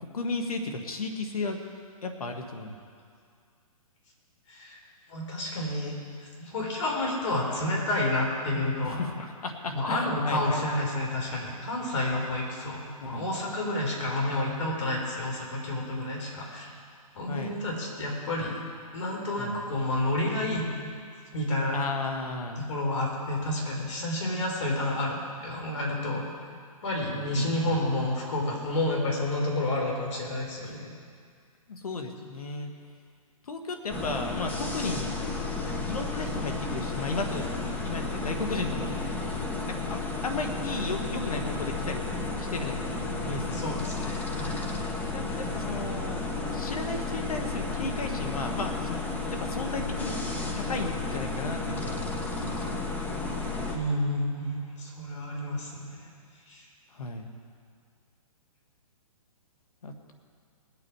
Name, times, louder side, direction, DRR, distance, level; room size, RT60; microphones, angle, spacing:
voice 1, 0.0-1.6 2.0-2.7 8.8-10.6 13.0-13.3 17.3-17.6 19.4-19.6 21.7-22.6 27.1-27.8 30.6-30.8 31.7-32.7 33.5-35.1 35.9-37.5 37.8-38.9 39.7-42.1 42.4-43.6 43.9-44.0 45.1-46.2 46.5-49.0 49.3-50.2 50.5-52.0 52.4-52.9 56.9-57.3 59.8-60.1, left 3 dB, 80° left, 4 dB, 1.8 m, -34 dB
voice 2, 4.5-4.8 5.1-5.9 6.2-9.1 9.7-16.7 17.1-18.5 18.9-20.6 21.3-21.8 22.7-26.3 26.8-30.9 43.5-44.9 53.7-56.1 56.5-56.6, left 1 dB, 55° left, -1 dB, 4.2 m, -30 dB
sound 1, 33.9-53.8, left 3 dB, 10° left, 0.9 m, -32 dB
19.5 x 8.8 x 4.9 m, 2.2 s
hypercardioid pair, 145°, 19 cm